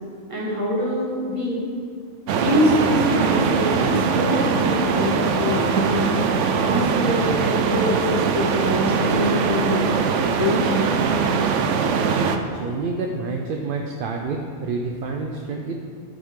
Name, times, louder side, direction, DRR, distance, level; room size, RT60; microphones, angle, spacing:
voice 1, 0.3-1.7 2.4-6.1 6.5-10.0 10.3-10.9, left 1 dB, 25° right, -6 dB, 2.0 m, -24 dB
sound 1, 2.3-12.4, right 5 dB, 85° right, 0.9 m, -21 dB
voice 2, 12.1-15.8, right 4 dB, 55° right, 2 dB, 0.7 m, -28 dB
12.0 x 6.1 x 3.7 m, 2.3 s
omnidirectional pair, 1.2 m